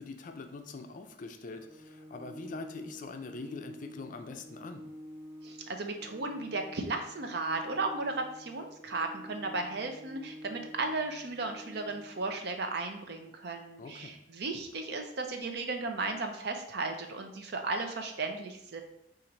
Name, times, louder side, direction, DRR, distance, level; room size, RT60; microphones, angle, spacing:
voice 1, 0.0-4.9 13.8-14.2, left 3 dB, 45° left, 6 dB, 0.4 m, -43 dB
Organ, 1.5-12.5, equal, 20° right, 0.4 m, -49 dB
voice 2, 5.4-18.8, right 3 dB, 65° right, 5 dB, 0.6 m, -35 dB
4.4 x 2.5 x 3.9 m, 0.75 s
head